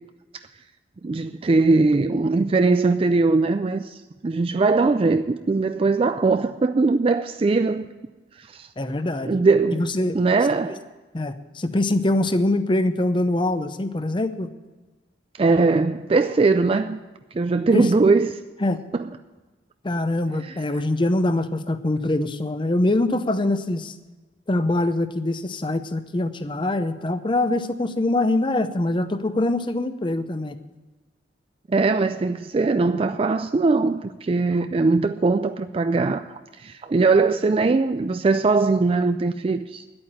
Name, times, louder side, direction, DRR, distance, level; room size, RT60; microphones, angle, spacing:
voice 1, 1.0-7.9 8.4-8.7 9.2-9.8 10.1-10.8 15.4-17.0 17.3-18.4 18.9-19.1 20.4-20.6 31.7-39.8, right 3 dB, 30° right, 0.3 m, -20 dB
voice 2, 8.8-9.4 9.7-10.2 11.1-14.5 17.7-17.9 18.6-18.8 19.8-23.9 24.5-30.6, left 2 dB, 25° left, 0.6 m, -23 dB
10.5 x 8.7 x 8.9 m
head